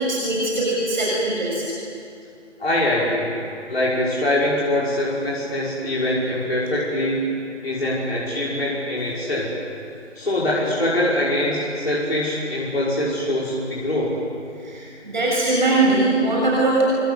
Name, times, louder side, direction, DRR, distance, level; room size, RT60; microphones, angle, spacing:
voice 1, 0.0-1.6 14.6-16.8, right 2 dB, 40° right, -4 dB, 6.9 m, -21 dB
voice 2, 2.6-3.3 3.7-7.3 7.6-9.5 10.2-14.2, left 1 dB, 55° left, -6 dB, 5.7 m, -23 dB
26.5 x 25.5 x 8.1 m, 2.4 s
figure-of-eight pair, 165°, 36 cm